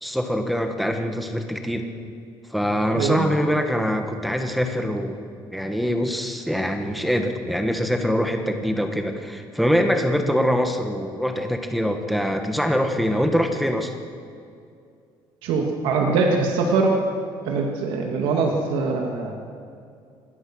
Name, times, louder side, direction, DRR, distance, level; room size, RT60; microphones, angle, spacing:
voice 1, 0.0-1.8 2.5-5.2 5.5-13.9, equal, ahead, 5 dB, 1.5 m, -24 dB
voice 2, 15.4-16.9 17.4-19.3, right 4 dB, 85° right, 2 dB, 2.4 m, -22 dB
26.0 x 21.0 x 6.3 m, 2.4 s
cardioid pair, 170°, 9 cm